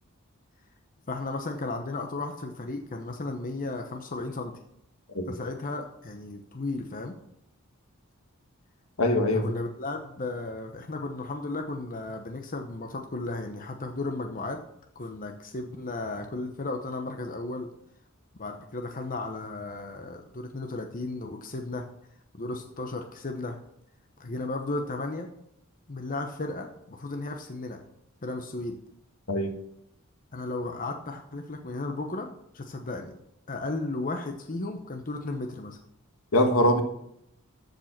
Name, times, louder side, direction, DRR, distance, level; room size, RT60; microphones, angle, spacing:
voice 1, 1.1-4.5 5.3-7.2 9.3-14.6 14.9-17.7 18.4-21.8 22.3-23.6 24.2-25.3 25.9-27.8 28.2-28.8 30.3-33.1 33.5-35.8, left 2 dB, 40° left, 4 dB, 0.9 m, -34 dB
voice 2, 9.0-9.5 29.3-29.5 36.3-36.8, left 1 dB, 70° left, 5 dB, 1.5 m, -22 dB
13.5 x 5.4 x 5.9 m, 0.75 s
head